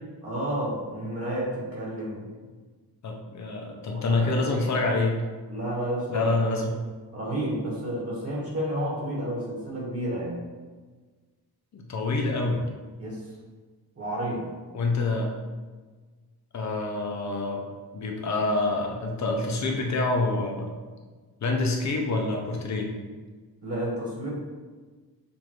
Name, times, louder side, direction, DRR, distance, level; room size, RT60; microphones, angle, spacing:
voice 1, 0.2-2.2 3.9-4.8 5.5-6.3 7.1-10.4 13.0-13.2 14.0-14.5 23.6-24.3, right 1 dB, 35° right, -5 dB, 1.3 m, -31 dB
voice 2, 3.0-5.2 6.1-6.7 11.7-12.6 14.7-15.3 16.5-17.6 17.9-20.7 21.4-22.9, left 2 dB, 45° left, 1 dB, 0.7 m, -26 dB
6.9 x 2.6 x 3.0 m, 1.4 s
wide cardioid pair, 160°, 39 cm